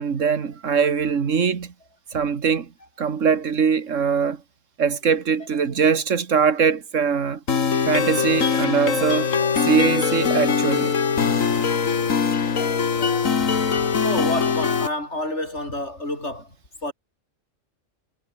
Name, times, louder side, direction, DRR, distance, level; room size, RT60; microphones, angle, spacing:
voice 1, 0.0-1.7 2.1-2.7 3.0-4.4 4.8-7.4 7.8-9.3 9.6-11.0, right 6 dB, 75° right, 1.9 m, -22 dB
sound 1, 7.5-14.9, left 6 dB, 85° left, 2.1 m, -22 dB
voice 2, 12.2-16.6 16.8-16.9, left 1 dB, 60° left, 8.2 m, -31 dB
omnidirectional pair, 1.3 m